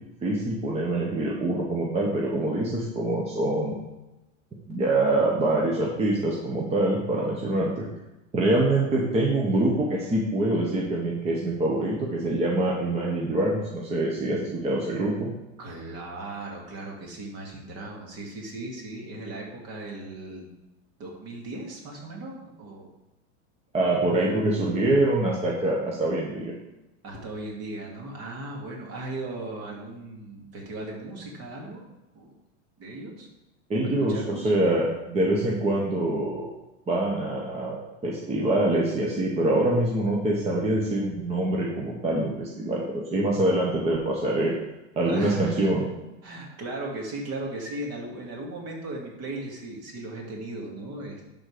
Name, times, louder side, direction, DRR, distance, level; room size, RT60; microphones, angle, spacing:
voice 1, 0.2-3.7 4.7-7.8 8.3-15.3 23.7-26.5 33.7-36.5 36.9-37.8 38.0-44.6 45.0-45.9, right 1 dB, 15° right, -3 dB, 1.0 m, -25 dB
voice 2, 15.6-20.5 21.0-22.9 27.0-31.8 32.1-32.3 32.8-33.3 33.8-34.5 45.0-45.7 46.2-51.3, right 2 dB, 40° right, -1 dB, 2.4 m, -37 dB
11.0 x 4.0 x 4.9 m, 1.0 s
supercardioid pair, 145°, 36 cm